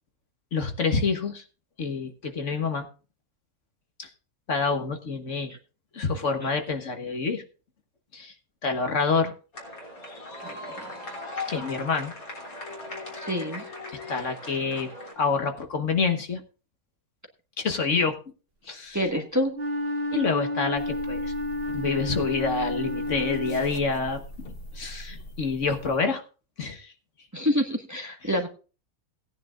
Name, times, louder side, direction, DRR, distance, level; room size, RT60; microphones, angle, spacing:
voice 1, 0.5-1.4 1.8-2.9 4.0-4.1 4.5-5.5 5.9-7.4 8.1-8.3 8.6-9.3 11.5-12.1 14.1-14.9 15.2-16.4 17.6-18.1 18.7-19.0 20.1-21.3 21.7-24.2 24.7-26.2 26.6-26.9, left 4 dB, 60° left, 6 dB, 1.6 m, -27 dB
sound 1, 9.5-15.1, left 2 dB, 75° left, 4.0 m, -38 dB
voice 2, 10.4-11.0 13.2-13.6 18.9-19.5 27.3-28.5, equal, 10° right, 4 dB, 1.4 m, -27 dB
Wind instrument woodwind instrument, 19.5-24.0, left 1 dB, 40° right, 1.7 m, -31 dB
sound 2, 20.8-26.0, equal, 45° left, 1.2 m, -42 dB
18.0 x 10.0 x 2.5 m, 0.34 s
omnidirectional pair, 1.5 m